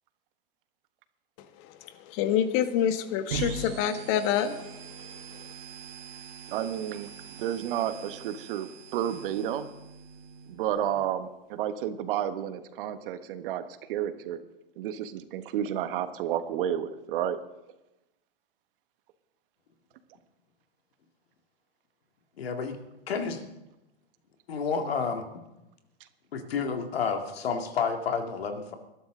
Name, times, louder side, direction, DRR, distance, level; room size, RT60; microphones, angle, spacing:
voice 1, 2.1-4.6, left 9 dB, 45° left, 10 dB, 1.5 m, -26 dB
sound 1, 3.3-10.9, right 6 dB, 85° right, 3.6 m, -41 dB
voice 2, 6.5-9.7 10.5-14.4 14.8-17.4, right 10 dB, 60° right, 11 dB, 1.4 m, -31 dB
voice 3, 22.4-22.8 23.1-23.4 24.5-25.2 26.3-28.7, left 5 dB, 85° left, 6 dB, 2.3 m, -30 dB
20.5 x 12.5 x 3.8 m, 0.96 s
hypercardioid pair, 120°, 30 cm